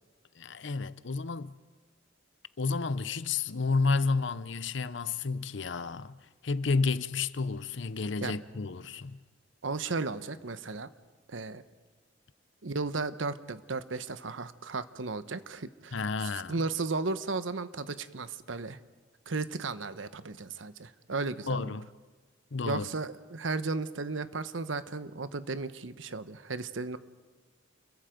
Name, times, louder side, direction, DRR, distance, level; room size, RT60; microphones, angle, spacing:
voice 1, 0.4-1.6 2.6-6.2 6.4-9.2 15.9-16.6 21.5-21.9 22.5-22.9, left 4 dB, 70° left, 0.7 m, -31 dB
voice 2, 9.6-10.9 11.3-11.6 12.6-18.8 19.3-21.8 22.7-27.0, right 3 dB, 90° right, 1.0 m, -35 dB
29.5 x 22.5 x 5.2 m
head